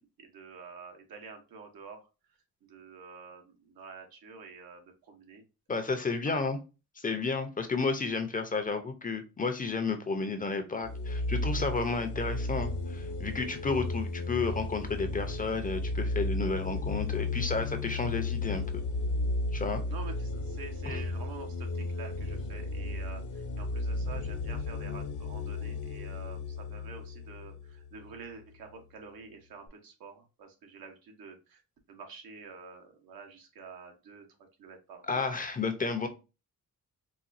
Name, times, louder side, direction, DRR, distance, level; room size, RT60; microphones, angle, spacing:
voice 1, 0.0-2.0 2.7-5.4 5.7-6.4 19.8-31.6 31.9-34.2 34.6-35.3, right 5 dB, 80° right, 3 dB, 1.0 m, -48 dB
voice 2, 5.7-6.6 7.0-18.8 19.5-19.8 20.8-21.0 35.0-36.1, left 4 dB, 25° left, 7 dB, 0.5 m, -32 dB
sound 1, 10.8-28.2, left 2 dB, 60° left, 0.7 m, -34 dB
4.1 x 2.2 x 2.5 m, 0.30 s
cardioid pair, 100°, 35 cm